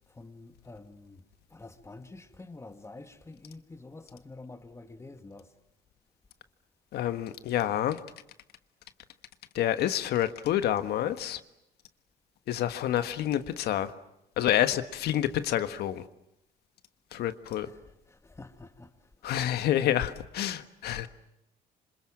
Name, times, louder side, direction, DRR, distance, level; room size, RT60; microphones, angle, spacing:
voice 1, 0.1-1.2 1.5-5.5 17.6-19.4, left 2 dB, 15° left, 2.1 m, -48 dB
voice 2, 6.9-8.0 9.5-11.4 12.5-13.9 14.4-16.0 17.1-17.7 19.2-21.1, left 11 dB, 70° left, 1.5 m, -28 dB
27.5 x 26.0 x 7.5 m
cardioid pair, 110°, 17 cm